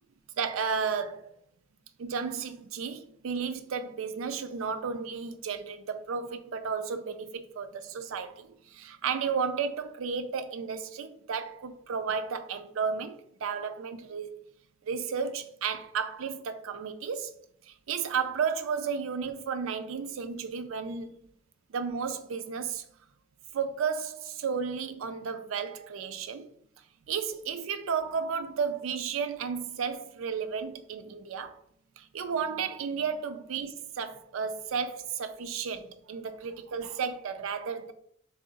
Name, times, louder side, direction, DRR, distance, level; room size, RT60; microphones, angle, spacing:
voice 1, 0.4-1.3 2.0-14.4 14.9-17.3 17.7-21.1 21.7-22.8 23.5-26.5 27.1-31.6 32.0-37.9, right 6 dB, 90° right, 0.4 m, -33 dB
2.7 x 2.6 x 3.9 m
head